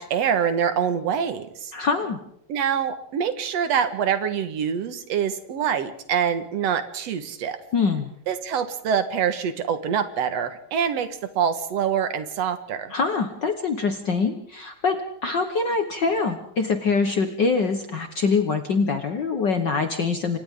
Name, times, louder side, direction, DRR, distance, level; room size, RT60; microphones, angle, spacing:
voice 1, 0.0-1.7 2.5-7.6 8.3-11.1 11.4-12.9, right 8 dB, 60° right, 9 dB, 2.4 m, -25 dB
voice 2, 1.7-2.2 7.7-8.1 12.9-20.4, left 4 dB, 55° left, 7 dB, 1.2 m, -24 dB
29.5 x 25.0 x 3.7 m, 0.72 s
omnidirectional pair, 3.6 m